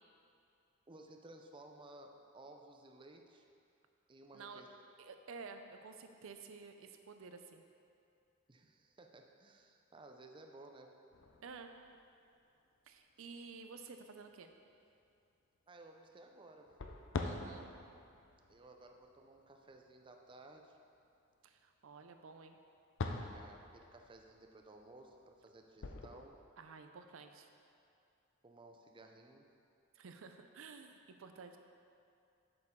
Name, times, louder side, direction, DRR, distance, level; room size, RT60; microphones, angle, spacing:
voice 1, 0.9-3.4 4.1-4.7 8.5-11.0 15.7-16.8 18.5-20.8 23.2-26.3 28.4-29.5, right 2 dB, 25° right, 3 dB, 0.5 m, -57 dB
voice 2, 5.0-7.6 11.4-11.7 12.9-14.5 17.2-17.7 21.4-22.6 26.6-27.5 29.9-31.6, right 4 dB, 70° right, 6 dB, 0.5 m, -52 dB
sound 1, 11.1-12.3 13.0-13.1 13.8-13.9 16.6-20.4 22.8-26.2, left 3 dB, 65° left, 0.6 m, -45 dB
8.0 x 6.8 x 3.7 m, 2.5 s
head